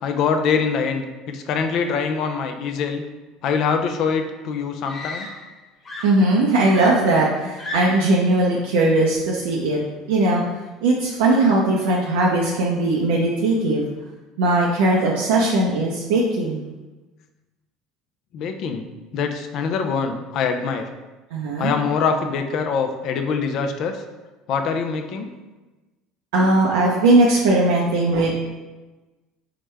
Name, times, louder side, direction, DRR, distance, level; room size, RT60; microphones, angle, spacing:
voice 1, 0.0-3.0 3.4-5.3 18.3-18.9 19.1-20.9 21.6-24.0 24.5-25.3, left 5 dB, 60° left, 6 dB, 0.4 m, -24 dB
Screaming, 4.8-5.6 5.9-8.2 9.1-9.4, left 2 dB, 35° left, 0.8 m, -34 dB
voice 2, 6.0-9.8 10.1-10.4 10.8-13.8 14.4-16.7 21.3-21.7 26.3-28.3, right 2 dB, 85° right, -3 dB, 0.5 m, -19 dB
4.6 x 2.2 x 3.2 m, 1.2 s
supercardioid pair, 90°, 0 cm